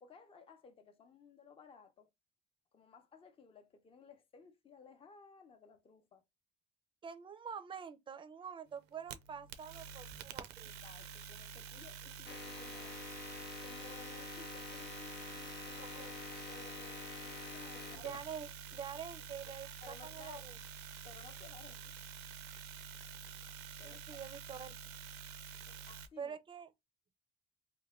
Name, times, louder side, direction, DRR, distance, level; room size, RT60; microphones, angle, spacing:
voice 1, 0.0-2.1 2.7-6.2 10.6-13.0 13.6-16.0 16.5-18.2 19.8-20.5 21.0-21.9 23.8-24.2 25.7-26.4, left 5 dB, 35° left, 0.6 m, -58 dB
voice 2, 7.0-10.7 15.9-16.1 18.0-20.5 23.8-24.8 26.2-26.7, right 7 dB, 30° right, 0.5 m, -46 dB
sound 1, 8.8-26.1, right 6 dB, 90° right, 0.5 m, -49 dB
sound 2, 12.3-18.4, left 7 dB, 80° left, 0.6 m, -48 dB
3.0 x 2.2 x 3.6 m
cardioid pair, 110°, 17 cm